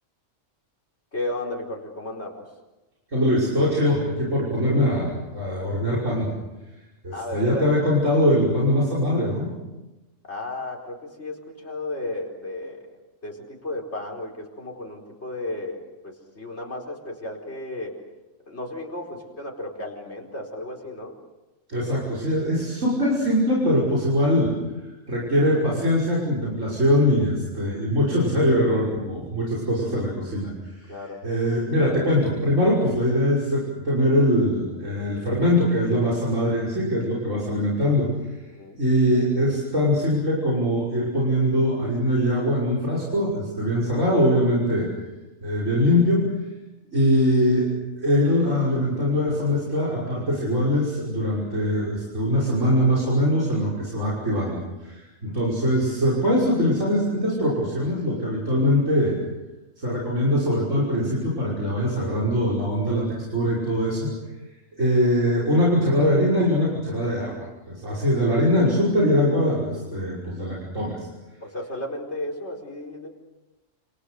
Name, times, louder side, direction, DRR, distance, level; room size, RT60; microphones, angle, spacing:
voice 1, 1.1-2.4 7.1-7.7 10.3-12.9 13.2-18.0 18.5-21.1 30.9-31.2 38.5-38.8 71.4-73.1, left 2 dB, 55° left, 0 dB, 4.9 m, -34 dB
voice 2, 3.1-6.3 7.0-9.5 21.7-24.5 25.1-30.9 31.2-38.1 38.7-44.9 45.4-46.3 46.9-47.7 48.0-59.1 59.8-64.1 64.8-71.1, equal, 70° right, -4 dB, 6.3 m, -22 dB
29.5 x 28.5 x 6.6 m, 1.1 s
omnidirectional pair, 1.4 m